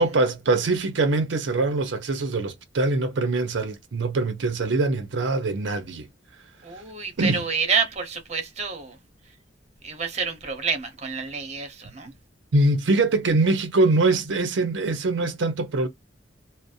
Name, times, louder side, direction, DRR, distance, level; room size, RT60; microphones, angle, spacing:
voice 1, 0.0-6.1 7.2-7.4 12.5-15.9, right 2 dB, 85° right, 0.5 m, -23 dB
voice 2, 6.6-9.0 9.8-12.1, right 5 dB, 40° right, 0.8 m, -28 dB
2.6 x 2.0 x 2.3 m
head